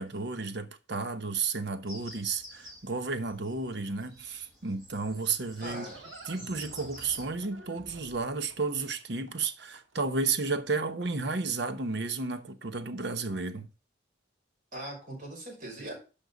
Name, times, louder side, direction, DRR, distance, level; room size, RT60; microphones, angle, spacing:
voice 1, 0.0-5.9 6.3-13.7, right 4 dB, 60° right, 1.0 m, -32 dB
sound 1, 1.9-7.2, equal, ahead, 4.6 m, -50 dB
Livestock farm animals working animals, 5.3-10.1, right 2 dB, 85° right, 1.5 m, -51 dB
voice 2, 5.6-6.0 14.7-15.9, right 1 dB, 45° right, 5.7 m, -40 dB
11.5 x 5.7 x 3.9 m
head